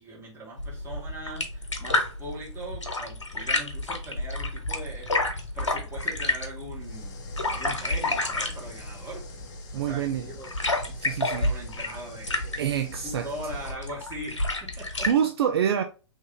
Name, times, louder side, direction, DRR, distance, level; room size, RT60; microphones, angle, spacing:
voice 1, 0.0-5.1 5.5-9.2 9.7-10.5 11.0-12.6 13.0-15.1, right 1 dB, 15° right, 1.6 m, -41 dB
sound 1, 0.6-15.1, left 2 dB, 80° left, 1.0 m, -30 dB
sound 2, 6.8-13.8, left 5 dB, 25° left, 0.8 m, -49 dB
voice 2, 9.7-10.3 11.0-11.5 12.6-13.3 14.8-15.8, right 9 dB, 55° right, 0.5 m, -26 dB
3.2 x 2.8 x 3.5 m
figure-of-eight pair, 105°, 15 cm